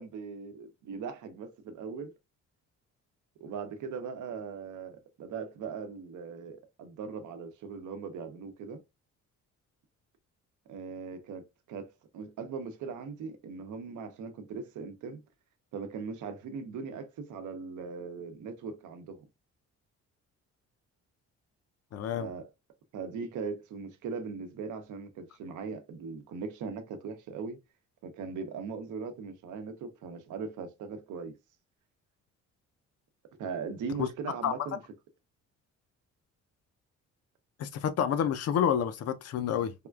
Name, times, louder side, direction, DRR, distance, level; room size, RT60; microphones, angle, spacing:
voice 1, 0.0-2.1 3.4-8.8 10.7-11.9 12.1-15.2 15.7-19.2 22.1-22.5 22.9-27.6 28.0-31.4 33.4-34.8, right 5 dB, 75° right, 0.7 m, -39 dB
voice 2, 21.9-22.3 34.0-34.1 34.4-34.5 37.6-39.7, left 8 dB, 55° left, 0.5 m, -28 dB
3.5 x 2.3 x 2.3 m
cardioid pair, 90°, 30 cm